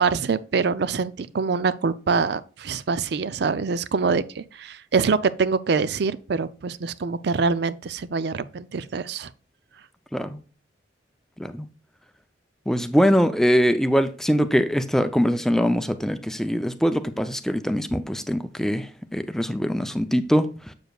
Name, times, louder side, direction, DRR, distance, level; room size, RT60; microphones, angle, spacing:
voice 1, 0.0-9.3, right 5 dB, 60° right, 0.4 m, -25 dB
voice 2, 12.7-18.9 19.1-20.5, equal, ahead, 0.4 m, -22 dB
7.8 x 7.0 x 2.3 m
head